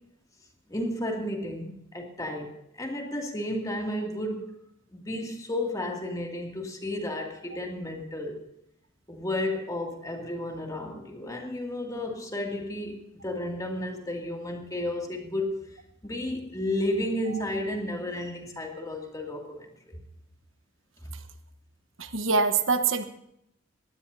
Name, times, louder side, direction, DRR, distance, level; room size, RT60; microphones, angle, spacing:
voice 1, 0.7-4.5 4.9-8.4 9.1-15.6 16.0-19.9, left 1 dB, 20° left, 1 dB, 2.4 m, -32 dB
voice 2, 22.0-23.0, right 4 dB, 75° right, 8 dB, 1.2 m, -24 dB
21.5 x 15.5 x 2.7 m, 0.77 s
head